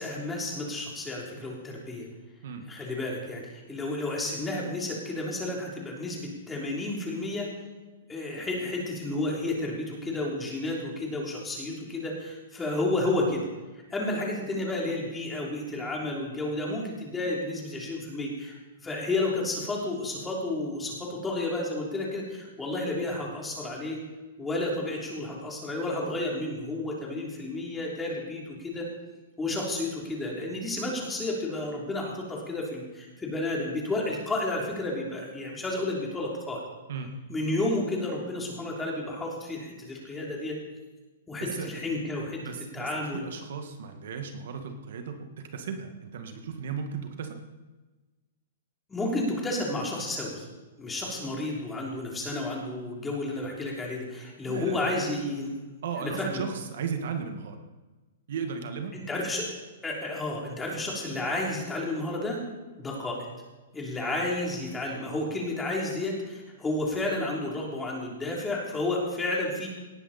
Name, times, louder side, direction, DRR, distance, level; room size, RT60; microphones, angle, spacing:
voice 1, 0.0-2.1 2.7-7.5 8.1-13.5 13.9-18.5 18.8-24.0 24.4-28.9 29.4-36.6 37.3-40.6 41.3-42.4 42.7-43.3 48.9-50.5 50.8-55.5 56.0-56.4 58.9-59.5 59.8-62.4 62.8-63.2 63.7-69.7, left 2 dB, 10° left, -2 dB, 3.3 m, -31 dB
voice 2, 41.4-41.7 42.4-47.4 54.5-54.8 55.8-57.6 58.3-58.9, right 6 dB, 65° right, 5 dB, 1.8 m, -35 dB
18.5 x 10.5 x 4.3 m, 1.2 s
hypercardioid pair, 150°, 0 cm